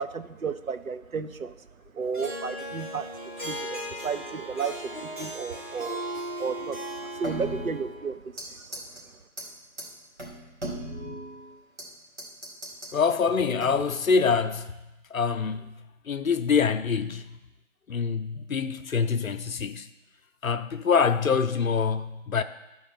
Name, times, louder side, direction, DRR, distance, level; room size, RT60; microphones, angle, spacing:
voice 1, 0.0-1.5 1.9-8.8, right 5 dB, 90° right, 0.7 m, -33 dB
Harp, 2.1-8.0, equal, 35° right, 1.5 m, -37 dB
sound 1, 7.2-8.5 8.7-9.0 9.4-9.5 9.8-9.9 10.2-11.9 12.2-12.9 13.6-14.0, right 1 dB, 60° right, 2.3 m, -37 dB
voice 2, 12.9-14.7 15.1-15.7 16.1-17.4 17.9-19.9 20.4-22.4, left 5 dB, 80° left, 0.6 m, -25 dB
12.0 x 4.2 x 4.3 m
figure-of-eight pair, 170°, 40 cm